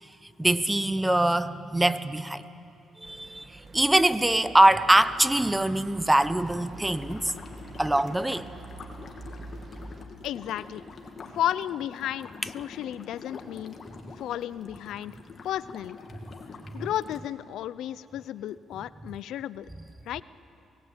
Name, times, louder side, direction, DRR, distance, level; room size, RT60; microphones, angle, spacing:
voice 1, 0.4-2.4 3.0-7.3 7.8-8.5, right 1 dB, 10° right, 14 dB, 0.8 m, -23 dB
sound 1, 3.0-10.1, right 2 dB, 40° right, 2.0 m, -46 dB
sound 2, 6.3-17.2, left 4 dB, 45° left, 2.4 m, -46 dB
voice 2, 10.2-10.8 11.3-13.8 14.2-15.2 15.4-16.0 16.7-19.7 20.1-20.2, left 11 dB, 80° left, 17 dB, 0.5 m, -33 dB
25.0 x 19.0 x 8.9 m, 2.8 s
cardioid pair, 90°, 0 cm